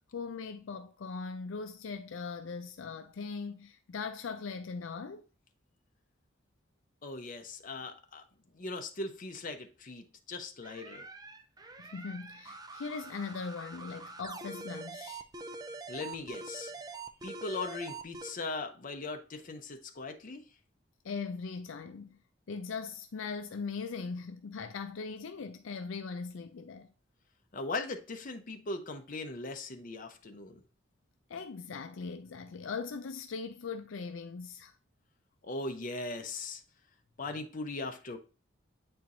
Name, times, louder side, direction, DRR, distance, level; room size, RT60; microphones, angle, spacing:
voice 1, 0.1-5.2 11.8-15.2 21.0-22.2 22.5-26.9 31.3-34.7, left 5 dB, 75° left, 0.4 m, -40 dB
voice 2, 7.0-8.2 8.5-11.1 15.9-16.7 17.2-20.4 27.5-30.6 35.4-36.6 37.2-38.2, left 3 dB, 45° left, 0.7 m, -39 dB
sound 1, 10.6-18.3, right 3 dB, 20° right, 0.4 m, -45 dB
8.4 x 4.4 x 2.6 m
head